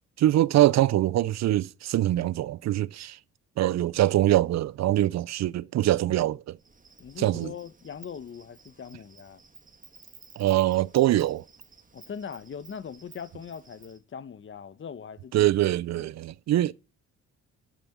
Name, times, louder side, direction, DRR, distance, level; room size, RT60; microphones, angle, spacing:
voice 1, 0.2-3.2 3.6-6.6 7.2-7.5 10.4-11.4 15.3-16.7, right 14 dB, 60° right, 0.5 m, -23 dB
Insect, 6.6-14.0, right 4 dB, 25° right, 1.9 m, -54 dB
voice 2, 7.0-9.4 11.9-15.5 15.9-16.1, left 7 dB, 40° left, 1.0 m, -41 dB
10.5 x 9.5 x 7.2 m
cardioid pair, 90°, 30 cm